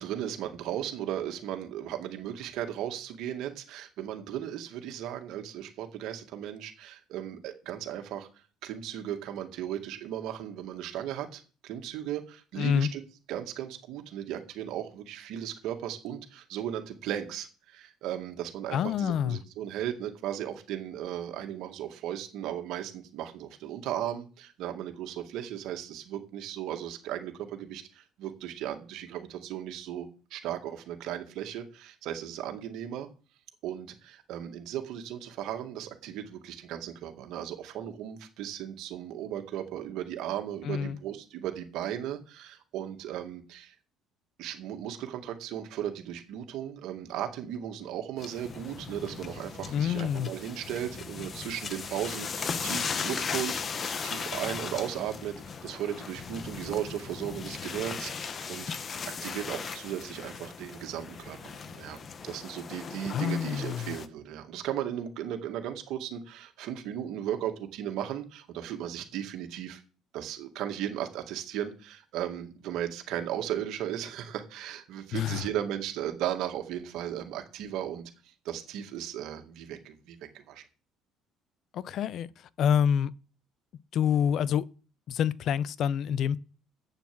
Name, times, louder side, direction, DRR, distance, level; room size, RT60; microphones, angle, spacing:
voice 1, 0.0-8.3 8.6-13.0 13.3-33.1 33.6-43.7 44.4-53.6 54.0-55.4 55.6-58.7 59.2-62.0 62.2-69.8 70.1-78.1 78.5-80.6, right 11 dB, 75° right, 2.0 m, -36 dB
voice 2, 12.6-12.9 18.7-19.4 40.6-41.0 49.7-50.3 63.1-63.9 75.1-75.5 81.7-83.1 83.9-84.7 85.1-86.4, left 8 dB, 60° left, 0.6 m, -27 dB
sound 1, 48.2-64.1, left 5 dB, 40° left, 1.0 m, -37 dB
8.3 x 7.2 x 7.7 m
cardioid pair, 100°, 0 cm